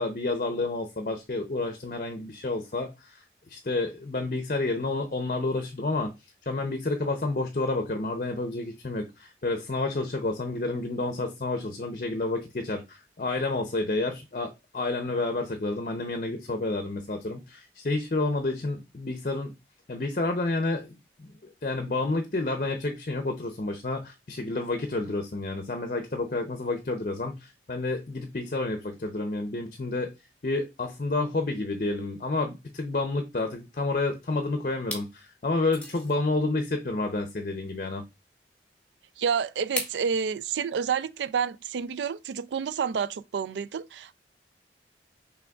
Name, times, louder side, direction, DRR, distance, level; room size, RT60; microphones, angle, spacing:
voice 1, 0.0-6.1 6.5-19.5 19.9-21.3 21.6-30.1 30.4-38.0, left 2 dB, 45° left, 0.6 m, -30 dB
sound 1, 34.1-34.4 34.8-35.1 35.7-36.2 37.7-37.8 39.8-40.0, left 2 dB, 5° left, 1.1 m, -35 dB
voice 2, 39.2-44.1, right 6 dB, 85° right, 0.4 m, -29 dB
6.0 x 3.4 x 2.3 m
head